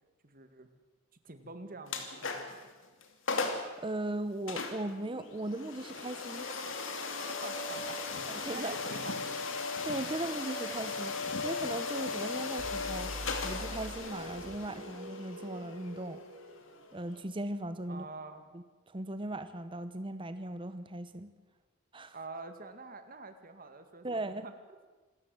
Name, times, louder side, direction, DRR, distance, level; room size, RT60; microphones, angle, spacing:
voice 1, 0.2-0.7 1.2-2.7 7.3-9.3 17.9-18.4 22.1-24.5, right 3 dB, 45° right, 8 dB, 2.1 m, -47 dB
sound 1, 1.9-2.6 3.0-3.1 3.3-3.7 4.5-17.2, left 4 dB, 75° left, 2.7 m, -37 dB
voice 2, 3.4-6.8 8.4-8.9 9.7-16.2 16.9-18.1 18.5-21.3 21.9-22.2 24.0-24.4, right 1 dB, 25° right, 11 dB, 0.9 m, -38 dB
sound 2, 12.6-17.3, equal, 90° right, 3.1 m, -45 dB
27.0 x 14.0 x 7.8 m, 1.3 s
head